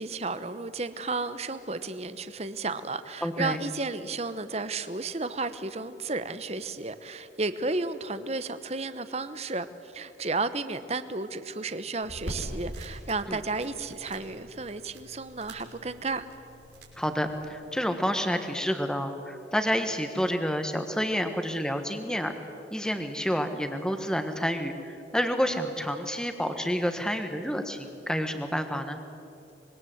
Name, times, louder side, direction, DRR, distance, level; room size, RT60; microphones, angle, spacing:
voice 1, 0.0-16.3, right 3 dB, 35° right, 12 dB, 1.0 m, -33 dB
voice 2, 3.2-3.6 13.3-13.4 17.0-22.3 22.7-29.0, equal, 5° left, 7 dB, 1.5 m, -29 dB
sound 1, 12.0-17.5, equal, 75° right, 6.1 m, -43 dB
25.5 x 22.0 x 8.0 m, 2.8 s
head